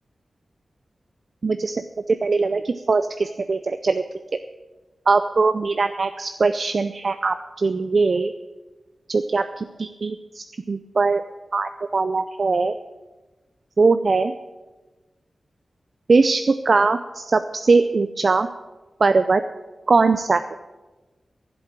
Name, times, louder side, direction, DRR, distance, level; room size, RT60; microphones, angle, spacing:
voice 1, 1.4-1.8 2.1-4.0 5.1-8.3 9.1-11.2 11.5-12.8 13.8-14.3 16.1-18.5 19.0-19.4 19.9-20.4, right 4 dB, 55° right, 9 dB, 0.5 m, -21 dB
11.5 x 7.8 x 8.8 m, 1.2 s
wide cardioid pair, 105°, 0 cm